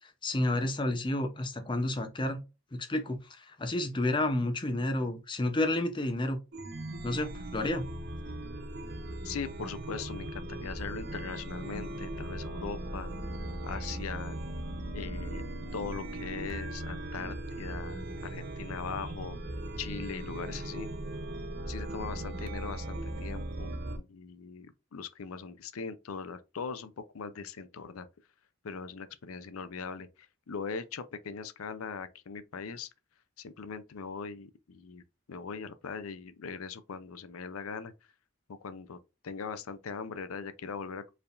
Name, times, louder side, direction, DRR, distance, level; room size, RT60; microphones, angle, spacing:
voice 1, 0.2-2.4 2.7-6.4 7.0-7.8, left 1 dB, 25° left, 0.6 m, -30 dB
Chime, 6.5-24.0, right 1 dB, 50° right, 0.6 m, -38 dB
voice 2, 9.2-13.1 13.6-14.4 14.9-15.4 15.7-19.4 19.8-20.9 21.7-23.7 24.0-28.1 28.6-32.9 33.4-35.0 35.3-37.9 38.5-39.0 39.2-41.1, left 5 dB, 90° left, 0.5 m, -40 dB
4.6 x 3.4 x 2.4 m
head